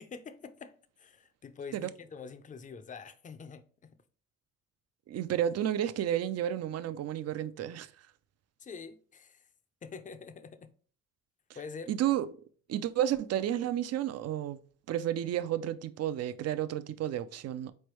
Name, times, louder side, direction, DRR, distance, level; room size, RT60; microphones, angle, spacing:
voice 1, 0.0-3.9 8.6-9.5 9.8-10.7 11.5-11.9, left 5 dB, 25° left, 0.5 m, -46 dB
voice 2, 5.1-7.9 11.9-12.3 12.7-14.6 14.9-17.7, right 11 dB, 55° right, 0.5 m, -31 dB
4.3 x 3.3 x 3.1 m
cardioid pair, 90°, 30 cm